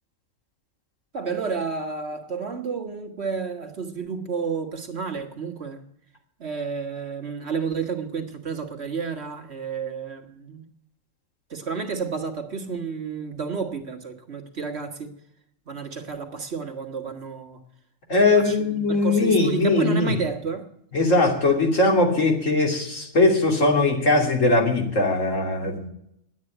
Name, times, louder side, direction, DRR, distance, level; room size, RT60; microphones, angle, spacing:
voice 1, 1.1-5.8 6.4-10.7 11.5-15.1 15.7-17.6 18.4-20.7, right 5 dB, 60° right, 1.9 m, -31 dB
voice 2, 18.1-20.1 20.9-25.9, left 2 dB, 90° left, 3.3 m, -20 dB
11.0 x 9.3 x 9.0 m
omnidirectional pair, 1.3 m